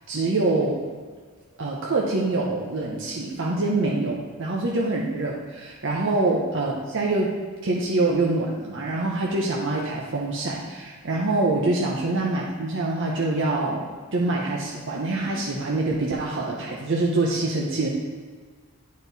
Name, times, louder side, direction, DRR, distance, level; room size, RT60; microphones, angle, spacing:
voice 1, 0.1-0.8 1.6-7.3 7.6-17.9, right 2 dB, 60° right, -3 dB, 0.8 m, -25 dB
9.1 x 4.2 x 4.0 m, 1.5 s
head